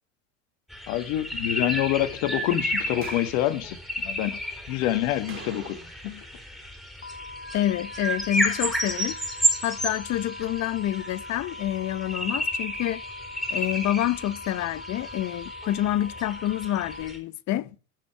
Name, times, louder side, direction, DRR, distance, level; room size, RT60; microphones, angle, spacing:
sound 1, 0.7-17.2, equal, ahead, 4.9 m, -32 dB
voice 1, 0.9-4.4 4.7-6.3, left 13 dB, 65° left, 2.1 m, -27 dB
sound 2, 3.0-3.5 5.3-6.1 6.4-6.5 11.5-11.6, right 6 dB, 30° right, 3.0 m, -44 dB
sound 3, 7.0-17.0, left 2 dB, 25° left, 2.1 m, -42 dB
voice 2, 7.5-9.2 9.6-13.0 13.5-17.7, left 13 dB, 45° left, 0.9 m, -27 dB
16.0 x 7.1 x 4.5 m
hypercardioid pair, 85°, 40 cm